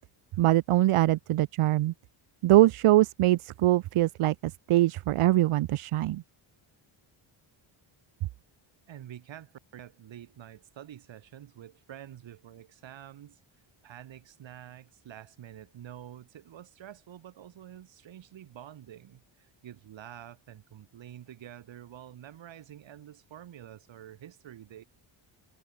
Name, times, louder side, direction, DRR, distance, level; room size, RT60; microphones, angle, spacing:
voice 1, 0.4-1.9 2.4-6.2, right 15 dB, 80° right, 1.3 m, -23 dB
voice 2, 8.9-13.4 13.8-24.8, right 11 dB, 60° right, 6.7 m, -48 dB
cardioid pair, 175°, 50 cm